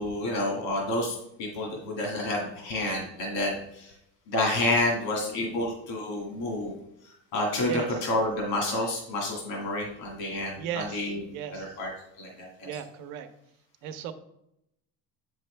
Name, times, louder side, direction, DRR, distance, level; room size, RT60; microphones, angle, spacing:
voice 1, 0.0-3.9 4.3-6.7 7.3-11.9 12.2-12.7, left 1 dB, 75° left, -1 dB, 2.2 m, -29 dB
voice 2, 10.6-11.0 11.3-11.6 12.6-13.3 13.8-14.1, right 9 dB, 80° right, 8 dB, 0.9 m, -35 dB
7.8 x 6.2 x 3.3 m, 0.80 s
supercardioid pair, 95°, 44 cm